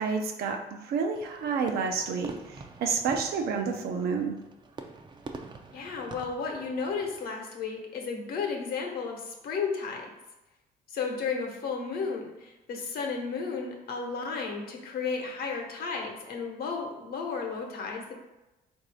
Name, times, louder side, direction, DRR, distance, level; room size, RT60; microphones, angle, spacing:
voice 1, 0.0-4.4, right 5 dB, 70° right, 4 dB, 0.6 m, -30 dB
Fireworks, 1.1-7.2, right 3 dB, 25° right, 0.4 m, -46 dB
voice 2, 5.7-10.0 10.9-18.1, left 5 dB, 65° left, 1 dB, 1.0 m, -33 dB
4.0 x 2.7 x 4.8 m, 1.0 s
cardioid pair, 110°, 17 cm